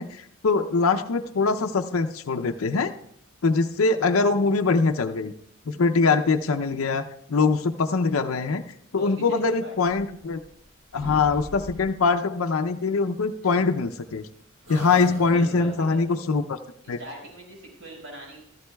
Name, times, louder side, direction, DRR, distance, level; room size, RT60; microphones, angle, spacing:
voice 1, 0.0-2.9 3.4-5.3 5.7-8.6 8.9-10.4 10.9-14.3 14.7-16.6 16.9-17.0, left 4 dB, 70° left, 6 dB, 0.5 m, -23 dB
voice 2, 9.0-9.7 15.3-16.2 16.8-18.4, right 1 dB, 80° right, -2 dB, 5.4 m, -42 dB
sound 1, 9.8-10.7 10.9-12.1 13.4-14.3 14.6-15.9, equal, 65° right, 2.8 m, -41 dB
14.5 x 14.0 x 2.3 m, 0.73 s
head